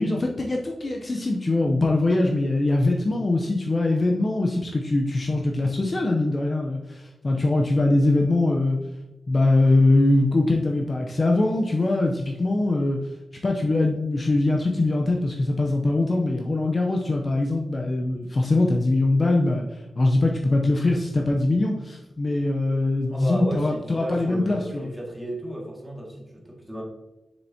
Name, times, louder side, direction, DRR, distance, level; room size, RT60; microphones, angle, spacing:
voice 1, 0.0-8.8 9.3-13.0 13.4-19.6 20.0-24.9, left 2 dB, 35° left, 1 dB, 0.7 m, -22 dB
voice 2, 23.1-26.8, equal, 5° right, -3 dB, 2.0 m, -34 dB
7.1 x 6.6 x 2.8 m, 1.0 s
wide cardioid pair, 135°, 0 cm